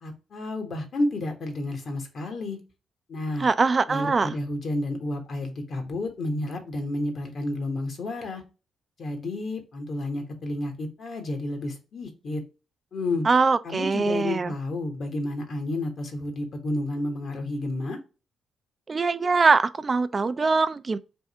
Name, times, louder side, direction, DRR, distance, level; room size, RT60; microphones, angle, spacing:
voice 1, 0.0-2.6 3.1-3.5 3.9-8.4 9.0-12.4 12.9-13.3 13.6-18.0, left 2 dB, 60° left, 1.3 m, -31 dB
voice 2, 3.4-4.3 13.2-14.5 18.9-21.0, right 4 dB, 35° right, 0.3 m, -22 dB
3.5 x 2.7 x 4.2 m
cardioid pair, 70°, 0 cm